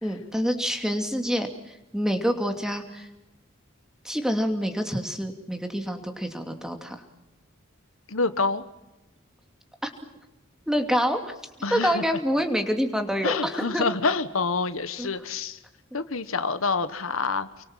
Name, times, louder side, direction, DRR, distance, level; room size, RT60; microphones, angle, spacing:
voice 1, 0.0-3.1 4.0-7.0 9.8-9.9 10.7-11.3 11.7-13.9 15.0-15.1, equal, 5° right, 5 dB, 2.7 m, -27 dB
voice 2, 8.1-8.6 11.6-12.0 13.2-15.6 15.9-17.5, left 4 dB, 75° left, 12 dB, 1.4 m, -27 dB
30.0 x 23.5 x 7.5 m, 0.98 s
head